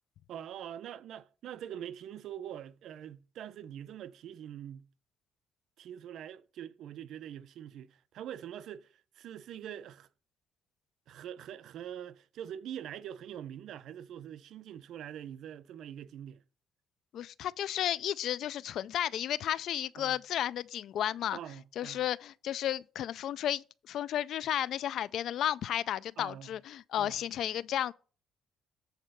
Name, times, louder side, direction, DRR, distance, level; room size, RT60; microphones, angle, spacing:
voice 1, 0.3-4.9 5.8-10.1 11.1-16.4 20.0-20.2 21.3-22.0 26.2-26.6 27.0-27.2, right 10 dB, 65° right, 0.6 m, -44 dB
voice 2, 17.1-21.4 21.8-27.9, left 11 dB, 65° left, 0.3 m, -33 dB
8.1 x 4.2 x 6.6 m
cardioid pair, 135°, 0 cm